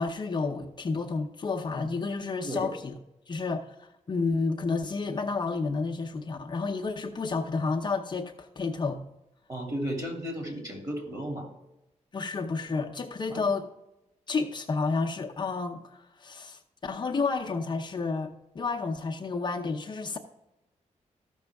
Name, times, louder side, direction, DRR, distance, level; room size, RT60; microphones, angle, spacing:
voice 1, 0.0-2.9 3.3-9.0 12.1-13.7 14.3-20.2, left 4 dB, 35° left, 0.7 m, -31 dB
voice 2, 9.5-11.5 13.3-13.4, equal, 30° right, 2.7 m, -34 dB
14.0 x 6.3 x 3.5 m
wide cardioid pair, 155°, 13 cm